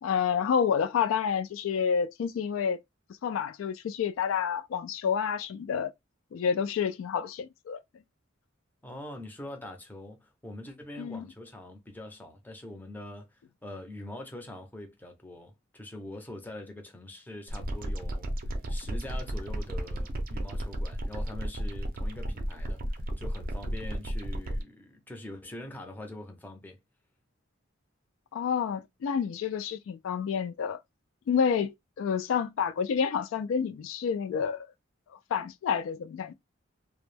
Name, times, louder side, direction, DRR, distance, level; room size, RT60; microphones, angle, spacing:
voice 1, 0.0-2.8 3.2-5.9 6.3-7.8 11.0-11.3 28.3-30.8 31.3-34.7 35.1-36.3, left 7 dB, 85° left, 0.3 m, -29 dB
voice 2, 8.8-18.3 18.7-26.8, left 1 dB, 10° left, 0.5 m, -43 dB
sound 1, 17.5-24.6, equal, 45° right, 0.5 m, -33 dB
2.1 x 2.0 x 3.1 m
head